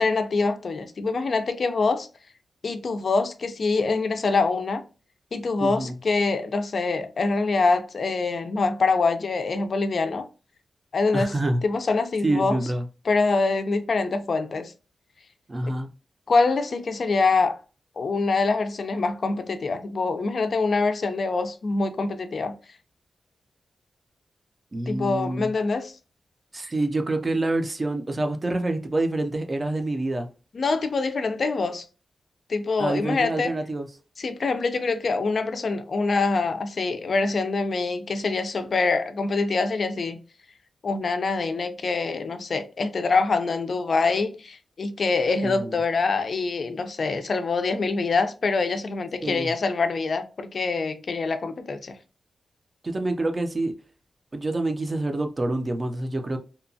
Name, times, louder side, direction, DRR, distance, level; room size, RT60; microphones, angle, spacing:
voice 1, 0.0-2.1 2.6-4.8 5.3-10.3 10.9-11.3 11.6-12.6 13.1-14.7 16.3-17.6 18.0-22.6 24.9-25.9 30.5-31.8 32.5-33.5 34.2-40.2 40.8-52.0, left 3 dB, 50° left, 0.4 m, -25 dB
voice 2, 11.1-11.6 12.2-12.8 15.5-15.9 24.7-25.5 26.5-30.3 32.8-33.9 45.4-45.8 49.2-49.5 52.8-53.7 54.3-56.4, right 2 dB, 25° right, 0.4 m, -27 dB
2.8 x 2.2 x 2.6 m
wide cardioid pair, 150°, 0 cm